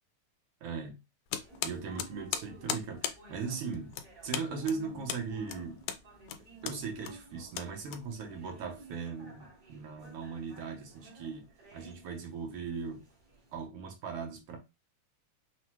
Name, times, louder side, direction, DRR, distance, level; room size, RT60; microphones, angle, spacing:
voice 1, 0.6-1.0 1.6-3.9 4.2-5.8 6.6-13.0 13.5-14.6, right 5 dB, 65° right, 1.6 m, -39 dB
sound 1, 1.3-8.5, left 10 dB, 85° left, 2.2 m, -39 dB
sound 2, 1.4-13.7, right 1 dB, 40° right, 1.4 m, -54 dB
6.0 x 2.3 x 2.9 m
omnidirectional pair, 3.7 m